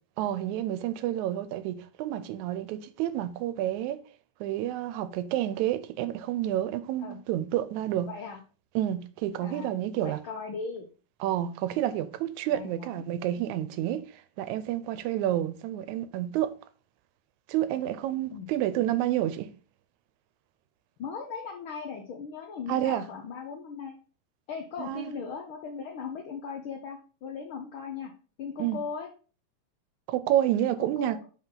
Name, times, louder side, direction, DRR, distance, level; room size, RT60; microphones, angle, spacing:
voice 1, 0.2-4.0 4.4-8.1 8.8-10.2 11.2-16.5 17.5-19.5 22.7-23.0 24.8-25.1 28.6-28.8 30.1-31.2, right 12 dB, 85° right, 2.0 m, -29 dB
voice 2, 8.0-8.4 9.4-9.7 10.0-10.9 12.5-13.0 18.3-18.5 21.0-24.0 24.5-28.1 28.4-29.1 30.8-31.3, left 5 dB, 85° left, 1.1 m, -38 dB
5.6 x 5.1 x 3.8 m
omnidirectional pair, 3.3 m